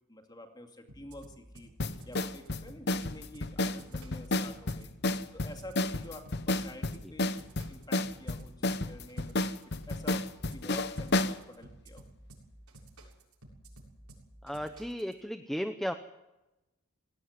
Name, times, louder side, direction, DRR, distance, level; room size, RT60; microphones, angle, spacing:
voice 1, 0.1-1.7 2.0-4.9 5.3-7.4 7.7-9.5 9.9-10.3 10.5-12.1, left 1 dB, 20° left, 5 dB, 2.4 m, -48 dB
sound 1, 0.9-15.1, right 1 dB, 90° right, 7.3 m, -53 dB
sound 2, 1.8-11.4, left 2 dB, 50° left, 0.9 m, -31 dB
voice 2, 14.4-15.9, equal, ahead, 8 dB, 0.7 m, -35 dB
20.0 x 17.5 x 9.6 m, 0.99 s
head